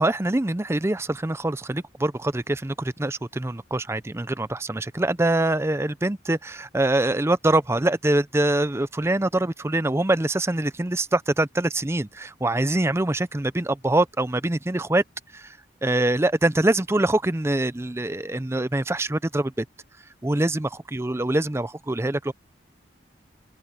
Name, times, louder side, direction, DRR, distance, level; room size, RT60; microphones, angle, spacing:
voice 1, 0.0-15.0 15.3-19.6 20.2-22.3, right 1 dB, 15° right, 0.5 m, -24 dB
open air
head